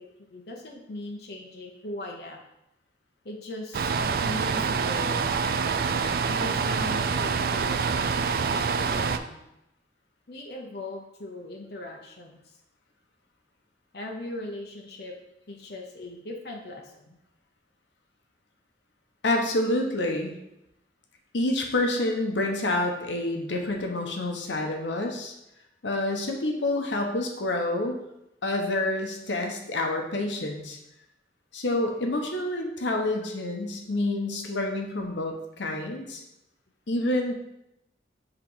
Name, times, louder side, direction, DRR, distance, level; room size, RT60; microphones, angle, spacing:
voice 1, 0.0-2.4 3.2-3.9 4.2-5.3 6.3-9.4 10.3-12.5 13.9-15.2 15.5-17.2 33.2-33.3, left 1 dB, 60° left, 0 dB, 0.7 m, -39 dB
sound 1, 3.7-9.2, right 5 dB, 55° right, 0.3 m, -26 dB
voice 2, 19.2-20.4 21.3-25.3 25.8-28.0 28.4-30.8 31.5-36.2 36.9-37.3, left 2 dB, 85° left, 2 dB, 0.8 m, -28 dB
7.4 x 3.0 x 4.7 m, 0.85 s
head